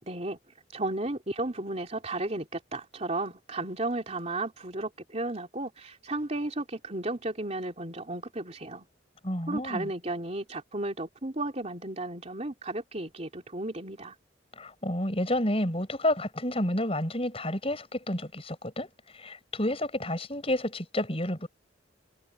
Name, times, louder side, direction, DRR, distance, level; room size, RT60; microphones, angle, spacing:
voice 1, 0.0-0.4 0.7-8.8 9.5-14.1, right 2 dB, 35° right, 3.4 m, -34 dB
voice 2, 9.2-9.9 14.6-18.9 19.1-21.5, left 1 dB, 30° left, 6.8 m, -30 dB
head